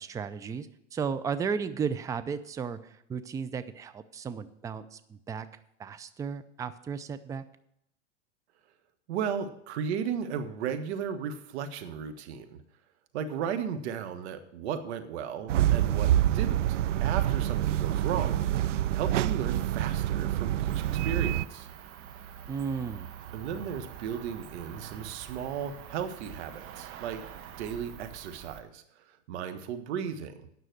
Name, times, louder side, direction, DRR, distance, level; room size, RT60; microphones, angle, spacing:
voice 1, 0.0-5.5 5.8-7.4 22.5-23.1, right 6 dB, 10° right, 12 dB, 0.4 m, -34 dB
voice 2, 9.1-12.6 13.1-18.5 18.9-21.7 23.3-27.3 27.6-28.8 29.3-30.5, right 7 dB, 65° right, 9 dB, 1.4 m, -35 dB
sound 1, 15.5-21.5, right 12 dB, 85° right, 0.5 m, -26 dB
Cricket, 20.7-28.6, right 9 dB, 40° right, 1.1 m, -45 dB
9.5 x 6.2 x 7.7 m, 0.74 s
hypercardioid pair, 115°, 36 cm